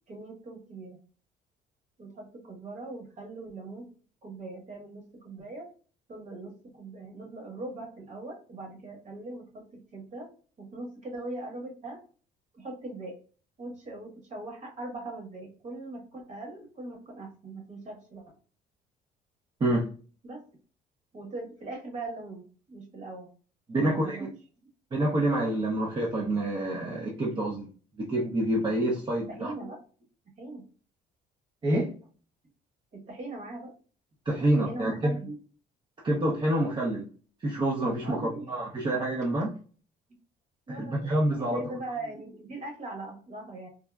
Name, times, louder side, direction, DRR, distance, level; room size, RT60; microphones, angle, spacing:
voice 1, 0.1-1.0 2.0-3.9 4.2-5.7 6.1-10.3 10.6-12.0 12.5-13.2 13.6-18.2 20.2-20.4 21.1-23.3 23.8-24.3 29.3-29.8 30.4-30.6 32.9-33.7 34.6-35.4 38.0-38.5 40.7-41.1 41.4-43.7, right 2 dB, 45° right, 2 dB, 1.2 m, -40 dB
voice 2, 23.7-24.3 24.9-27.7 28.0-29.5 31.6-31.9 34.3-35.1 36.0-37.1 37.4-38.2 38.5-39.5 40.7-41.6, right 1 dB, 30° right, -2 dB, 0.6 m, -27 dB
3.5 x 2.0 x 2.2 m, 0.40 s
cardioid pair, 110°, 17 cm